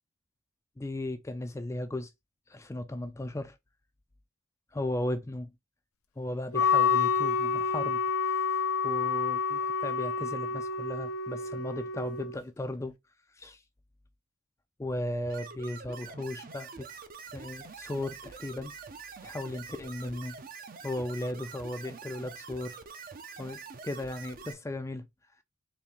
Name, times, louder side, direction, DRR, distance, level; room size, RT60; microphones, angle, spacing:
voice 1, 0.8-2.1 2.5-3.6 4.7-5.5 6.2-13.0 13.3-13.6 14.8-17.0 17.3-18.7 19.2-20.4 20.8-22.8 23.4-25.1, left 1 dB, 15° left, 0.3 m, -36 dB
Wind instrument woodwind instrument, 6.5-12.4, left 6 dB, 85° left, 0.6 m, -28 dB
sound 1, 15.3-24.5, right 5 dB, 40° right, 0.5 m, -45 dB
4.1 x 2.7 x 3.5 m
head